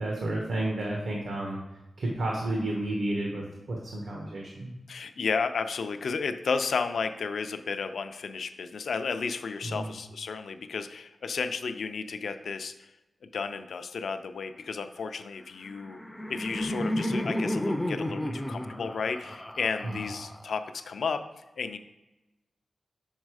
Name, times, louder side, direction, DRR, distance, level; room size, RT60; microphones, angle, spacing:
voice 1, 0.0-1.6 2.0-4.7 9.6-9.9 19.8-19.9, right 1 dB, 85° right, -1 dB, 1.0 m, -31 dB
voice 2, 4.9-12.9 13.3-16.0 16.3-21.2 21.6-21.8, left 5 dB, 80° left, 9 dB, 0.4 m, -33 dB
Laughter, 15.7-20.7, left 1 dB, 5° left, 0.4 m, -32 dB
6.3 x 4.0 x 4.8 m, 1.0 s
wide cardioid pair, 160°, 0 cm